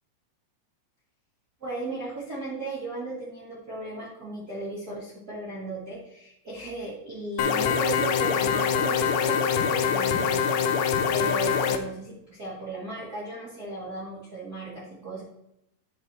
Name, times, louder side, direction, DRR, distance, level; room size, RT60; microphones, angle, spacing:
voice 1, 1.6-15.2, right 2 dB, 75° right, -6 dB, 0.8 m, -36 dB
sound 1, 7.4-11.8, left 7 dB, 85° left, 2.3 m, -24 dB
10.5 x 6.4 x 3.0 m, 0.84 s
omnidirectional pair, 5.1 m